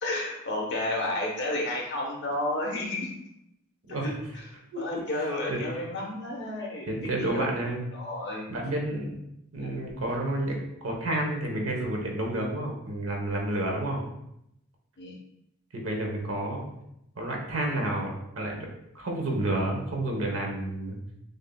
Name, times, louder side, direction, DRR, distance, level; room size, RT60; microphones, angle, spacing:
voice 1, 0.0-3.1 3.9-4.1 4.8-7.5 7.9-8.6 9.6-9.7 15.0-15.1, left 1 dB, 55° left, -1 dB, 1.0 m, -32 dB
voice 2, 6.9-7.8 8.5-9.2 9.5-14.0 15.7-16.6 17.2-18.7 18.9-21.0, right 1 dB, 70° right, 0 dB, 0.9 m, -30 dB
6.6 x 2.7 x 2.2 m, 0.81 s
head